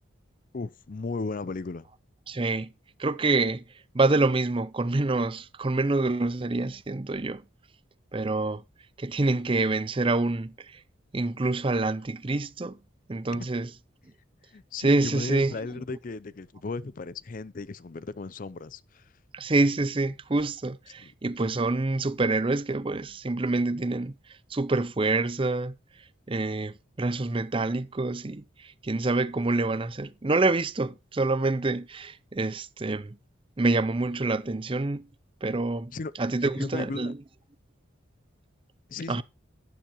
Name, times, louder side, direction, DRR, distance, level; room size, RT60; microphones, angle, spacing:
voice 1, 0.5-1.9 13.3-13.5 14.5-19.1 21.0-21.1 35.9-36.1 36.5-37.1 38.9-39.2, left 3 dB, 40° left, 0.5 m, -35 dB
voice 2, 2.3-2.7 3.0-3.6 3.9-7.4 8.1-8.6 9.0-10.8 11.1-12.8 13.1-13.7 14.8-15.5 19.3-24.1 24.5-25.7 26.3-33.2 33.6-35.1 35.4-35.9 36.2-37.2 39.1-39.2, right 2 dB, 25° right, 0.5 m, -26 dB
11.5 x 10.0 x 3.0 m
head